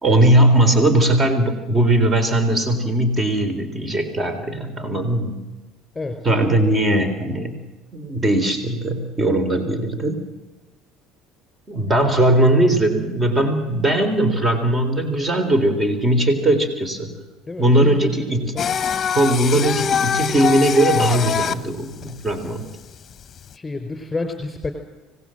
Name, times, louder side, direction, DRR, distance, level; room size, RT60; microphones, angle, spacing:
voice 1, 0.0-5.4 6.2-7.6 7.9-10.2 11.7-17.1 17.6-18.4 19.1-22.6, right 1 dB, 25° right, 8 dB, 3.8 m, -19 dB
voice 2, 6.6-7.2 17.5-18.7 19.5-19.6 23.5-24.7, left 3 dB, 15° left, 6 dB, 3.9 m, -30 dB
Singing, 18.6-23.5, left 7 dB, 35° left, 1.0 m, -23 dB
25.5 x 19.0 x 7.8 m, 1.2 s
supercardioid pair, 90°, 0 cm